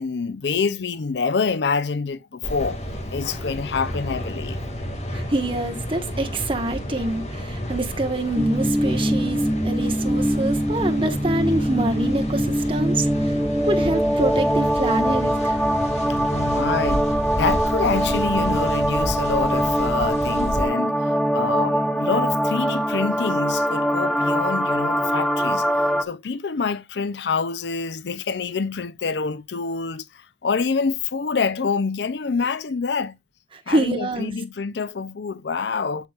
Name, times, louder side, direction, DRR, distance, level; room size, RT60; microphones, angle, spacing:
voice 1, 0.0-2.8 3.1-4.6 16.1-20.9 21.3-25.7 26.0-33.2 33.7-36.1, left 5 dB, 75° left, 0.5 m, -26 dB
sound 1, 2.4-20.7, equal, 40° left, 2.2 m, -31 dB
voice 2, 5.1-13.3 13.6-15.6 33.7-34.3, right 2 dB, 30° right, 1.4 m, -25 dB
sound 2, 8.4-26.0, equal, 5° left, 0.7 m, -23 dB
8.2 x 8.0 x 2.4 m
head